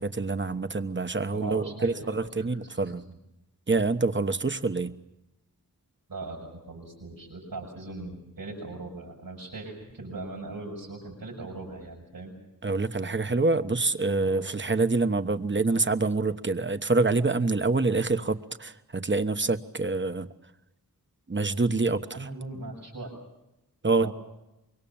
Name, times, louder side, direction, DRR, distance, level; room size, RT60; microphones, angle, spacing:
voice 1, 0.0-3.0 3.7-4.9 12.6-20.3 21.3-22.3 23.8-24.1, right 3 dB, 35° right, 10 dB, 1.2 m, -26 dB
voice 2, 1.3-2.5 2.8-3.1 6.1-12.4 14.2-14.4 22.1-23.1 23.9-24.1, right 2 dB, 75° right, -1 dB, 6.9 m, -39 dB
25.0 x 23.0 x 7.2 m, 0.92 s
cardioid pair, 50°, 35 cm